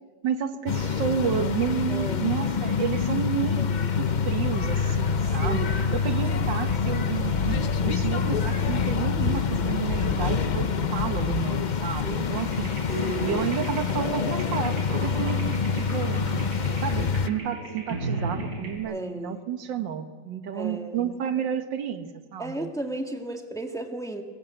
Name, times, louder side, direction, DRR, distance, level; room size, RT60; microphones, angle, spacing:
voice 1, 0.2-3.6 4.0-7.6 7.8-12.7 13.2-15.4 15.7-22.7, right 8 dB, 85° right, 9 dB, 1.9 m, -31 dB
sound 1, 0.7-17.3, left 6 dB, 80° left, 0.4 m, -26 dB
voice 2, 1.9-2.3 3.6-3.9 5.4-6.1 12.0-12.4 13.0-13.4 18.9-19.4 20.5-21.1 22.4-24.2, right 1 dB, ahead, 4 dB, 1.5 m, -35 dB
sound 2, 4.0-11.4, left 3 dB, 55° left, 2.1 m, -32 dB
sound 3, 12.4-18.8, right 1 dB, 60° right, 5.0 m, -34 dB
23.5 x 20.5 x 7.9 m, 1.5 s
omnidirectional pair, 1.9 m